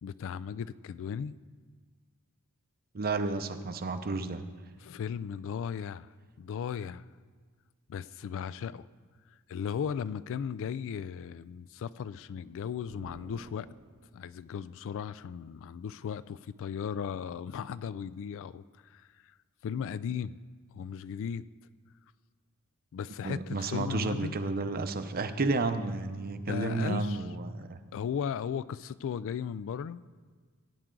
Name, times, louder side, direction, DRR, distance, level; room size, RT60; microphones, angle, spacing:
voice 1, 0.0-1.4 4.8-6.1 6.4-7.0 7.9-8.9 9.5-13.7 14.1-19.3 19.6-20.4 20.7-21.5 22.9-24.4 26.4-27.2 27.9-30.0, left 7 dB, 60° left, 16 dB, 0.3 m, -36 dB
voice 2, 2.9-4.4 23.2-27.8, right 3 dB, 45° right, 9 dB, 0.7 m, -31 dB
sound 1, 12.8-14.4, right 2 dB, 70° right, 0.9 m, -52 dB
16.0 x 9.3 x 3.8 m, 1.5 s
head